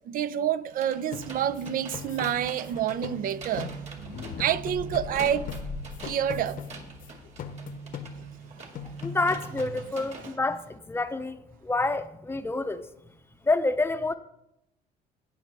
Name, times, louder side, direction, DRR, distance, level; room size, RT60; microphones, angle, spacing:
voice 1, 0.1-5.5 6.0-6.6, right 10 dB, 55° right, 0.5 m, -28 dB
sound 1, 0.7-10.3, right 3 dB, 40° right, 2.1 m, -47 dB
sound 2, 1.1-4.1 4.4-7.1 7.4-8.5 8.7-9.8, left 3 dB, 55° left, 0.9 m, -40 dB
sound 3, 3.9-9.7, left 5 dB, 80° left, 1.2 m, -42 dB
voice 2, 9.0-12.8 13.4-14.1, left 2 dB, 15° left, 0.7 m, -28 dB
17.5 x 6.0 x 3.4 m
cardioid pair, 110°, 17 cm